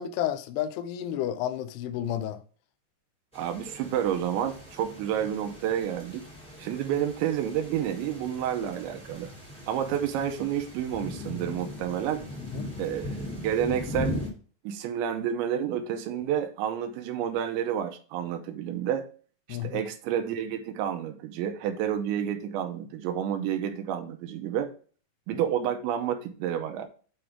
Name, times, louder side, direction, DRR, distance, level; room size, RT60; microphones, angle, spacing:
voice 1, 0.0-2.4 12.5-12.7 19.5-19.8, left 11 dB, 85° left, 2.5 m, -31 dB
sound 1, 3.3-14.3, left 2 dB, 5° left, 0.6 m, -39 dB
voice 2, 3.3-6.2 6.6-9.3 9.7-12.2 12.8-14.2 14.6-19.1 19.5-24.7 25.3-26.9, right 9 dB, 85° right, 3.0 m, -30 dB
8.8 x 3.6 x 4.7 m
omnidirectional pair, 5.4 m